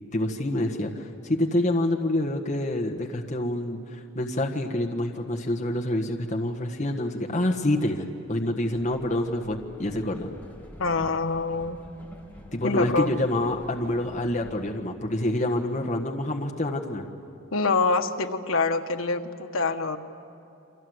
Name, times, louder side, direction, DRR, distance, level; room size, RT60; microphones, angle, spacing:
voice 1, 0.1-10.3 12.5-17.1, left 1 dB, 35° left, 1 dB, 1.5 m, -27 dB
Train, 8.6-14.8, equal, 10° left, 2.5 m, -48 dB
voice 2, 10.8-11.8 12.6-13.1 17.5-20.0, left 3 dB, 85° left, 6 dB, 1.4 m, -25 dB
29.5 x 25.0 x 8.0 m, 2.8 s
head